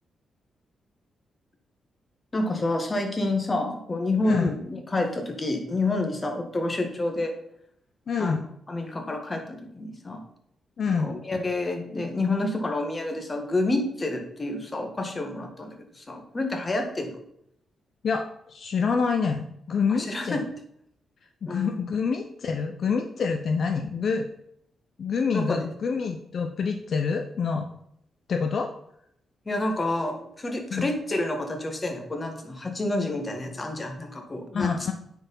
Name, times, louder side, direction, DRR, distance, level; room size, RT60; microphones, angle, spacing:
voice 1, 2.3-7.3 8.2-8.4 8.7-10.2 10.9-17.2 19.9-20.4 21.5-21.8 25.3-25.7 29.4-34.7, left 2 dB, 25° left, 4 dB, 1.7 m, -29 dB
voice 2, 8.1-8.4 10.8-11.1 18.0-20.4 21.5-24.2 25.0-27.7 28.3-28.7 30.7-30.9 34.5-34.9, left 5 dB, 60° left, 5 dB, 0.7 m, -26 dB
9.3 x 4.7 x 5.4 m, 0.72 s
cardioid pair, 100°, 0 cm